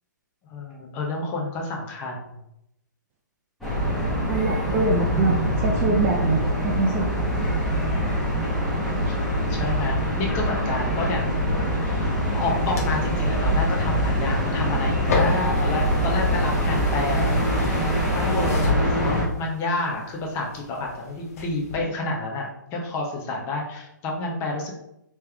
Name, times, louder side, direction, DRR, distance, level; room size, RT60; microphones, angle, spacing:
voice 1, 0.5-2.4 9.1-9.2 9.5-11.2 11.8-17.3 18.1-24.7, left 2 dB, 25° left, 0 dB, 0.8 m, -29 dB
sound 1, 3.6-19.2, equal, ahead, 1.1 m, -24 dB
voice 2, 4.3-7.1, right 3 dB, 20° right, 0 dB, 0.4 m, -24 dB
sound 2, 12.4-19.5 19.9-20.9 21.3-21.7, left 3 dB, 50° left, 1.1 m, -30 dB
3.3 x 3.1 x 3.4 m, 0.83 s
figure-of-eight pair, 130°, 11 cm